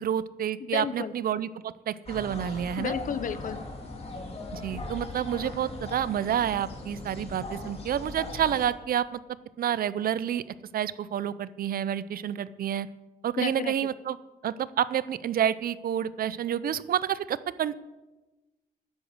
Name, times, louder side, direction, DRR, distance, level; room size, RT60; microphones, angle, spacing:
voice 1, 0.0-2.9 4.5-9.2 9.6-10.4 10.7-12.9 13.2-14.2 14.4-17.8, right 10 dB, 70° right, 17 dB, 0.6 m, -29 dB
voice 2, 0.6-1.1 2.8-3.6 13.4-13.7, left 7 dB, 55° left, 15 dB, 0.7 m, -32 dB
sound 1, 2.1-8.7, left 2 dB, 40° left, 2.3 m, -39 dB
10.0 x 8.0 x 7.9 m, 1.1 s
cardioid pair, 110°, 16 cm